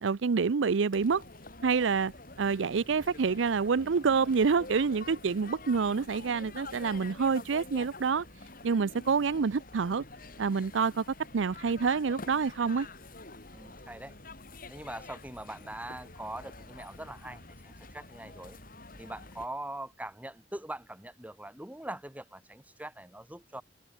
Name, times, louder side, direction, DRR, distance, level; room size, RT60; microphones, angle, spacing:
voice 1, 0.0-1.2 1.6-2.1 2.4-8.2 8.6-10.0 10.4-11.0 11.3-12.9, right 5 dB, 80° right, 0.5 m, -27 dB
sound 1, 0.9-19.5, left 2 dB, 50° left, 6.5 m, -48 dB
voice 2, 13.5-14.1 14.7-18.6 19.0-23.6, right 1 dB, 10° right, 2.2 m, -42 dB
head